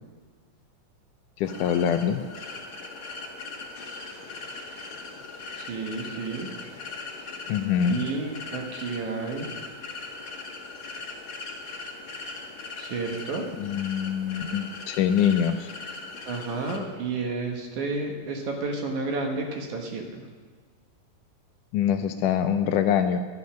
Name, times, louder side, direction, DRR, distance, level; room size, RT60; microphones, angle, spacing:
voice 1, 1.4-2.2 7.5-8.1 13.6-15.7 21.7-23.2, left 8 dB, 80° left, 8 dB, 2.0 m, -24 dB
sound 1, 1.4-16.8, left 3 dB, 50° left, 1.8 m, -40 dB
voice 2, 5.6-6.5 7.8-9.5 12.8-13.4 16.3-20.2, right 3 dB, 65° right, 2 dB, 2.6 m, -31 dB
12.0 x 11.0 x 6.2 m, 1.5 s
omnidirectional pair, 3.9 m